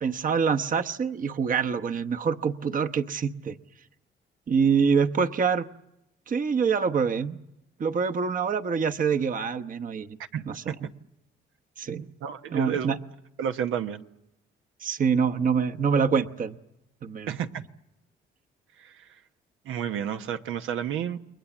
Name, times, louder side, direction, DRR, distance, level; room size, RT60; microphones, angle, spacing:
voice 1, 0.0-3.6 4.5-5.6 6.3-7.4 7.8-10.1 10.4-10.7 11.8-12.1 12.5-13.0 14.8-16.6 17.0-17.4, right 6 dB, 45° right, 7 dB, 1.0 m, -25 dB
voice 2, 10.3-10.7 12.2-13.0 13.4-14.0 17.3-17.6 18.8-18.9 19.7-21.2, right 9 dB, 85° right, 7 dB, 1.0 m, -31 dB
29.5 x 22.0 x 7.2 m, 0.89 s
cardioid pair, 90°, 20 cm